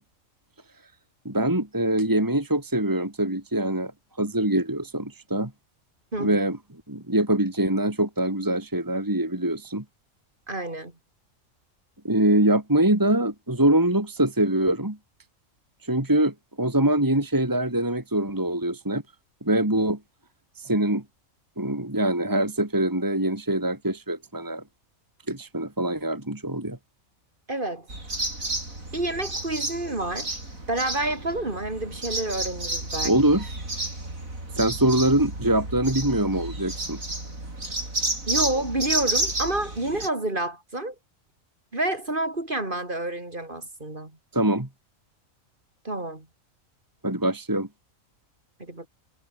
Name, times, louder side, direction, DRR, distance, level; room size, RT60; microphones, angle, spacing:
voice 1, 1.2-3.9 4.2-5.5 6.2-6.6 6.9-9.8 12.0-15.0 15.8-19.0 19.4-20.0 20.6-21.0 21.6-24.6 25.3-26.8 33.0-33.6 34.5-37.0 44.3-44.7 47.0-47.7, right 1 dB, 15° right, 2.5 m, -24 dB
voice 2, 10.5-10.9 27.5-27.9 28.9-30.4 30.7-33.1 38.3-41.0 41.7-44.1 45.8-46.3 48.6-48.9, right 2 dB, 40° right, 3.7 m, -29 dB
sound 1, 27.9-40.1, right 2 dB, 85° right, 7.4 m, -31 dB
omnidirectional pair, 1.4 m